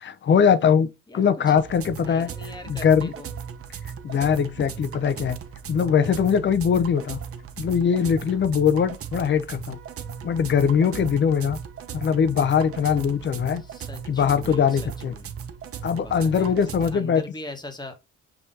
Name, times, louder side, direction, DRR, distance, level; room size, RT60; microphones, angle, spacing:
voice 1, 0.0-0.9 1.1-2.3 2.7-3.1 4.0-5.4 5.7-7.2 7.6-9.8 10.2-11.6 11.9-13.6 14.1-15.1 15.8-17.2, left 7 dB, 40° left, 0.6 m, -21 dB
voice 2, 1.1-1.5 2.0-3.3 8.3-8.5 10.9-11.2 13.5-15.3 15.9-18.0, left 2 dB, 15° left, 1.2 m, -42 dB
sound 1, 1.6-16.9, right 7 dB, 50° right, 0.7 m, -37 dB
5.6 x 3.0 x 2.6 m
cardioid pair, 90°, 30 cm